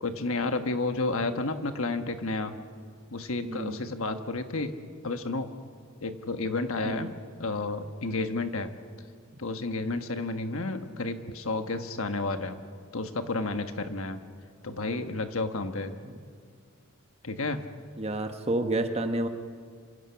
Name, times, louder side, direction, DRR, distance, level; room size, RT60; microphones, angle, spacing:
voice 1, 0.0-2.6 3.1-4.7 5.0-5.5 6.0-7.1 7.4-8.7 9.4-12.6 12.9-14.2 14.6-16.0 17.2-17.6, left 3 dB, 65° left, 8 dB, 1.4 m, -31 dB
voice 2, 18.0-19.3, right 2 dB, 25° right, 6 dB, 1.2 m, -29 dB
27.5 x 26.0 x 5.8 m, 2.1 s
head